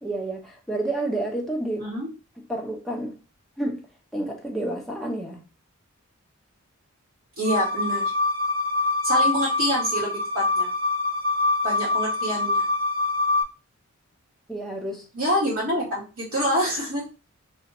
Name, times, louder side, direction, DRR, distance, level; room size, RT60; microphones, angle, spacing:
voice 1, 0.0-1.9 2.4-3.2 3.6-3.8 4.1-5.4 14.5-15.1, right 1 dB, ahead, 0.8 m, -30 dB
sound 1, 7.4-13.4, left 3 dB, 40° right, 0.9 m, -24 dB
voice 2, 7.4-8.1 9.0-10.7 11.6-12.7 15.1-17.0, equal, 85° right, 2.0 m, -26 dB
3.4 x 2.8 x 4.1 m
head